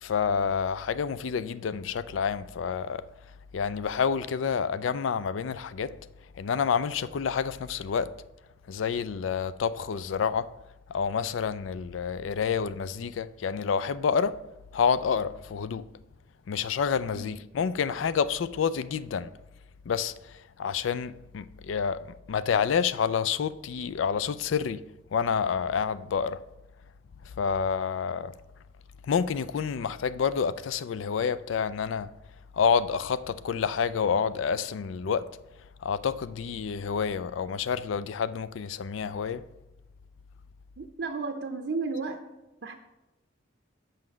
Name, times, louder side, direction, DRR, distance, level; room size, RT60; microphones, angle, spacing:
voice 1, 0.0-3.1 3.5-6.0 6.4-8.2 8.7-10.5 10.9-15.9 16.5-19.3 19.9-24.8 25.1-26.4 27.4-28.3 29.1-32.1 32.5-35.3 35.8-39.4, left 6 dB, 90° left, 0.4 m, -28 dB
voice 2, 40.8-42.3 42.6-42.7, right 4 dB, 65° right, 0.6 m, -33 dB
7.7 x 5.8 x 6.1 m
head